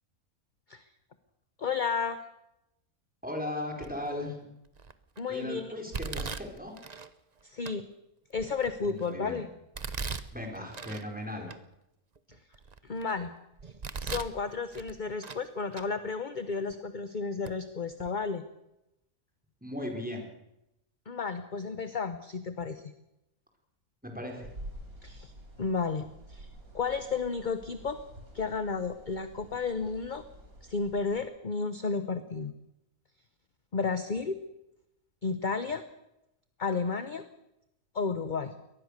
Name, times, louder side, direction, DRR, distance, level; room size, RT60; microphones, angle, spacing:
voice 1, 1.6-2.2 5.2-5.8 7.4-7.8 8.3-9.5 12.8-13.3 13.6-13.7 14.0-18.4 21.1-22.9 25.0-25.3 25.6-26.5 26.7-28.0 28.3-30.2 30.6-32.5 33.7-34.4 35.2-35.8 36.6-37.3 37.9-38.5, left 4 dB, 35° left, 11 dB, 1.0 m, -32 dB
voice 2, 3.2-4.4 5.3-6.7 8.8-9.4 10.3-11.5 19.6-20.3 24.0-24.5, left 1 dB, 5° right, 2 dB, 4.7 m, -37 dB
Domestic sounds home sounds, 3.8-4.2 4.8-5.2 5.9-7.1 7.7-7.8 8.3-9.1 9.7-11.1 11.5-11.6 12.2-13.1 13.6-14.4 14.7-15.5 15.7-15.9 16.7-16.8 17.4-17.6 17.9-18.1, right 5 dB, 35° right, 0.9 m, -39 dB
sound 1, 24.4-31.2, right 1 dB, 80° right, 5.0 m, -49 dB
23.0 x 19.0 x 6.6 m, 0.87 s
omnidirectional pair, 1.5 m